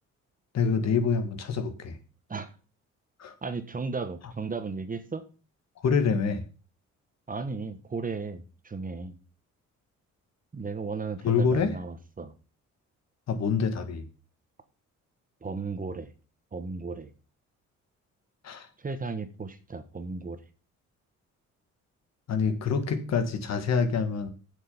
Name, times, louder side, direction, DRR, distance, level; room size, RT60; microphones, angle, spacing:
voice 1, 0.5-2.0 3.2-3.3 5.8-6.4 11.2-11.7 13.3-14.1 18.4-18.7 22.3-24.3, left 5 dB, 60° left, 9 dB, 1.7 m, -26 dB
voice 2, 3.4-5.2 7.3-9.2 10.5-12.3 15.4-16.1 16.5-17.1 18.8-20.4, right 4 dB, 25° right, 10 dB, 1.3 m, -35 dB
7.8 x 6.6 x 7.0 m, 0.36 s
cardioid pair, 90°, 30 cm